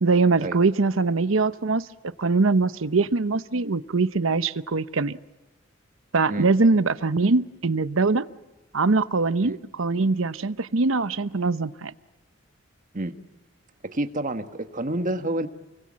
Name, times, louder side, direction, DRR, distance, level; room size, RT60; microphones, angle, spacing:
voice 1, 0.0-1.9 2.2-5.2 6.1-8.2 8.7-11.9, right 3 dB, 75° right, 14 dB, 0.8 m, -22 dB
voice 2, 13.9-15.5, right 1 dB, 40° right, 8 dB, 1.6 m, -28 dB
29.0 x 22.5 x 7.5 m, 1.1 s
head